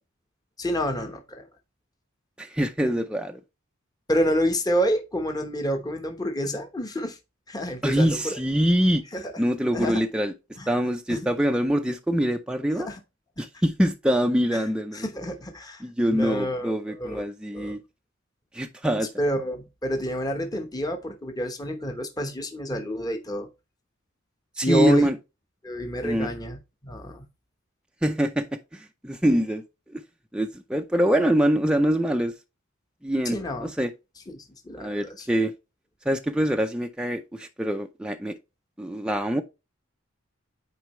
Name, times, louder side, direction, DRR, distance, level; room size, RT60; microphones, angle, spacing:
voice 1, 0.6-1.5 4.1-7.2 7.5-8.4 9.1-9.3 9.7-10.0 10.6-10.7 11.1-11.3 12.8-13.0 14.5-14.6 14.9-15.8 16.1-17.2 17.5-17.8 19.2-23.5 24.6-25.1 25.6-27.3 33.3-33.7 34.3-35.3, equal, 20° left, 1.0 m, -28 dB
voice 2, 2.4-3.4 7.8-9.0 9.4-10.3 10.7-12.9 13.4-15.1 15.8-17.8 18.5-19.1 24.6-25.2 26.0-26.3 28.0-29.6 29.9-30.0 30.3-32.3 33.0-33.9 34.8-35.5 36.1-38.4 38.8-39.4, equal, 5° right, 0.5 m, -24 dB
9.3 x 4.5 x 3.1 m
head